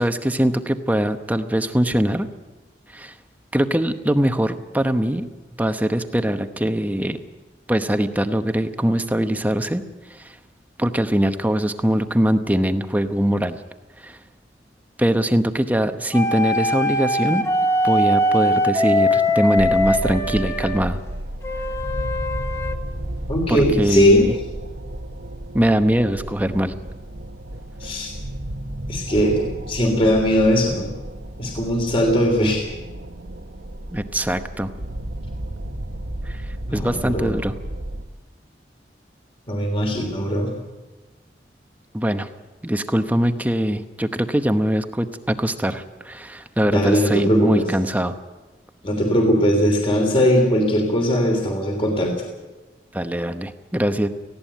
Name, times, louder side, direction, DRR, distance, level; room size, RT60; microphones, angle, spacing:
voice 1, 0.0-2.3 2.9-3.1 3.5-5.3 5.6-7.2 7.7-9.8 10.1-10.4 10.8-13.6 14.0-14.2 15.0-17.4 17.8-21.0 23.5-24.4 25.5-26.7 33.9-34.7 36.2-36.4 36.7-37.5 41.9-42.3 42.6-48.1 52.9-54.1, equal, 10° right, 8 dB, 0.9 m, -22 dB
sound 1, 16.1-20.8 21.4-22.8, left 1 dB, 15° left, 1.2 m, -21 dB
sound 2, 19.6-38.1, right 1 dB, 75° right, 1.3 m, -32 dB
voice 2, 23.3-24.2 27.8-28.1 28.9-29.4 29.7-30.9 31.4-32.7 36.7-37.3 39.5-40.5 46.7-47.6 48.8-52.1, equal, 30° left, 2 dB, 3.3 m, -19 dB
19.0 x 16.0 x 9.2 m, 1.2 s
head